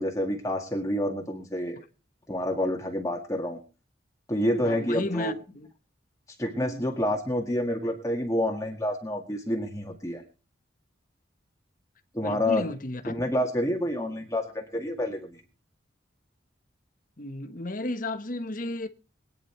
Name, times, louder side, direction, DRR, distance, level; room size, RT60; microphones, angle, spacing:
voice 1, 0.0-1.8 2.3-3.6 4.3-5.3 6.4-10.2 12.1-12.6 13.1-15.4, left 1 dB, 15° left, 1.9 m, -28 dB
voice 2, 4.6-5.7 6.6-6.9 12.2-13.1 17.2-18.9, left 2 dB, 45° left, 1.4 m, -33 dB
22.0 x 10.0 x 4.5 m
head